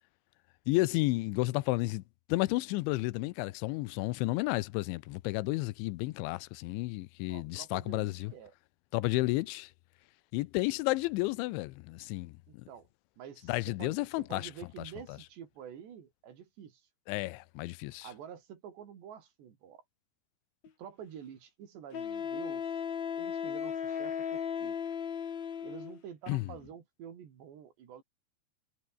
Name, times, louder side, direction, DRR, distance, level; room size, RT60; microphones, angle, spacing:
voice 1, 0.7-2.0 2.3-8.3 8.9-9.7 10.3-12.6 13.5-14.5 15.1-15.2 17.1-18.1 26.3-26.5, left 20 dB, 85° left, 3.1 m, -32 dB
voice 2, 7.3-8.5 12.5-12.9 13.2-16.9 18.0-19.8 20.8-22.8 23.2-24.8 25.6-28.0, right 8 dB, 70° right, 5.2 m, -48 dB
Wind instrument woodwind instrument, 20.6-20.7 21.9-26.0, left 7 dB, 45° left, 3.1 m, -36 dB
omnidirectional pair, 5.3 m